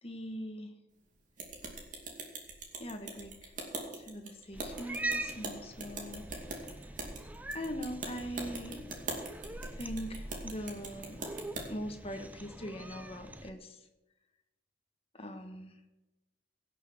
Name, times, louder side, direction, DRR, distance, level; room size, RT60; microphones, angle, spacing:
voice 1, 0.0-0.7 2.8-3.5 3.9-6.3 6.6-6.7 7.5-8.8 9.8-11.3 11.7-13.8 15.1-15.7, equal, 35° left, 5 dB, 1.5 m, -41 dB
sound 1, 1.4-11.7, right 2 dB, 45° right, 2.6 m, -42 dB
Cat, 4.5-13.5, right 2 dB, 10° right, 0.6 m, -43 dB
17.0 x 6.7 x 6.4 m, 1.0 s
head